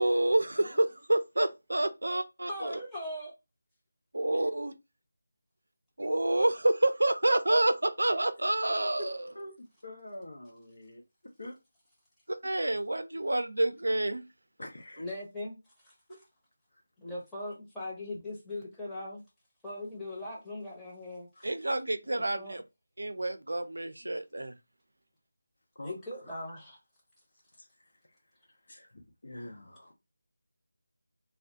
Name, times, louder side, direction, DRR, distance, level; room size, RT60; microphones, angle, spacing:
voice 1, 0.0-2.8 4.1-4.7 6.0-9.1 12.3-14.2 21.4-22.6 23.0-24.5, right 1 dB, 75° right, 0.4 m, -28 dB
voice 2, 2.4-3.3 15.0-15.5 15.8-15.9 17.0-19.2 19.6-21.3 22.0-22.6 25.8-26.8, left 1 dB, 5° left, 0.8 m, -40 dB
voice 3, 9.0-11.0 11.4-11.5 14.6-15.1 16.1-16.2 21.3-21.4 25.8-25.9 26.3-26.6 27.6-27.7 28.7-29.9, left 1 dB, 60° left, 0.7 m, -45 dB
2.3 x 2.1 x 2.7 m
figure-of-eight pair, 160°, 0 cm